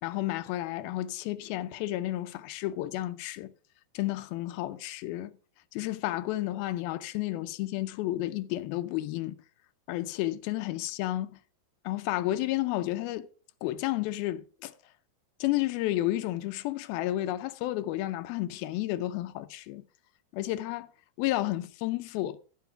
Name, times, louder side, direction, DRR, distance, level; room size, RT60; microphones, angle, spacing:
voice 1, 0.0-3.5 3.9-5.4 5.7-9.4 9.9-11.4 11.8-13.3 13.6-14.7 15.4-19.9 20.3-20.9 21.2-22.4, left 15 dB, 85° left, 2.5 m, -31 dB
14.0 x 4.9 x 6.8 m
omnidirectional pair, 4.3 m